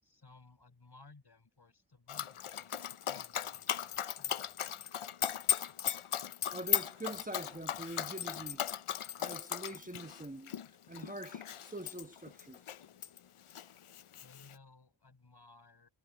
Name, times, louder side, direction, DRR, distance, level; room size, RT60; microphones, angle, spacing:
voice 1, 0.0-5.0 14.2-15.9, left 3 dB, 50° left, 5.8 m, -60 dB
Dog, 2.1-13.2 13.5-14.5, left 9 dB, 85° left, 0.8 m, -37 dB
voice 2, 6.5-8.6 9.2-10.5 10.9-12.6, right 1 dB, 15° right, 1.4 m, -44 dB
wide cardioid pair, 60°, 49 cm